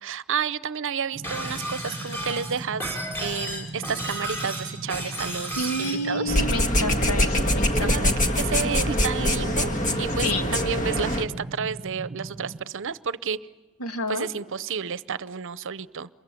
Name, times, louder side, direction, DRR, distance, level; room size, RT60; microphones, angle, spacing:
voice 1, 0.0-6.4 7.8-9.7 10.0-13.4 14.1-16.1, right 6 dB, 60° right, 17 dB, 0.8 m, -31 dB
sound 1, 1.1-12.6, right 2 dB, 25° right, 1.2 m, -39 dB
Shatter, 1.2-6.0, equal, 10° left, 5.7 m, -33 dB
voice 2, 5.6-8.2 10.2-10.6 13.8-14.3, left 1 dB, 85° left, 7 dB, 2.2 m, -29 dB
sound 2, 6.3-11.2, equal, 35° left, 1.7 m, -24 dB
27.5 x 23.0 x 9.1 m, 1.3 s
head